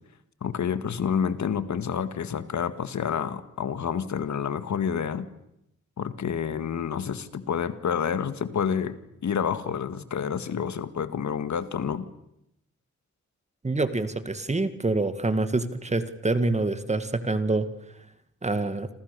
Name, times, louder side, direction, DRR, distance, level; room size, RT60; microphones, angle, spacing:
voice 1, 0.4-5.3 6.0-12.1, left 7 dB, 70° left, 12 dB, 1.8 m, -29 dB
voice 2, 13.6-17.7 18.4-18.9, right 2 dB, 20° right, 11 dB, 1.9 m, -26 dB
28.0 x 27.5 x 6.9 m, 0.80 s
wide cardioid pair, 120°, 30 cm